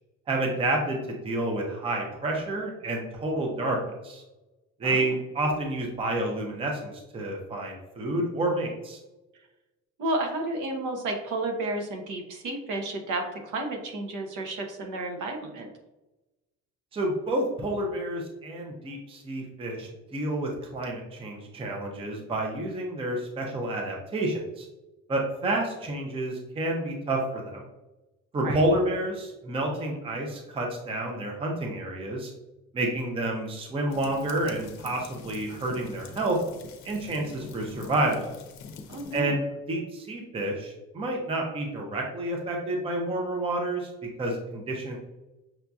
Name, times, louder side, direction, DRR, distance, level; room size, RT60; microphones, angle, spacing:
voice 1, 0.3-3.8 4.0-4.2 4.8-9.0 16.9-24.6 25.1-27.6 28.3-32.3 32.7-36.4 36.8-38.3 39.1-39.4 39.7-43.9 44.2-45.0, right 1 dB, 20° right, 0 dB, 0.5 m, -29 dB
voice 2, 4.8-5.1 10.0-15.7 28.4-28.6 38.9-39.4, right 2 dB, 75° right, 3 dB, 0.8 m, -32 dB
sound 1, 33.9-39.2, left 5 dB, 65° left, 0.6 m, -45 dB
5.9 x 2.6 x 2.3 m, 1.0 s
cardioid pair, 175°, 31 cm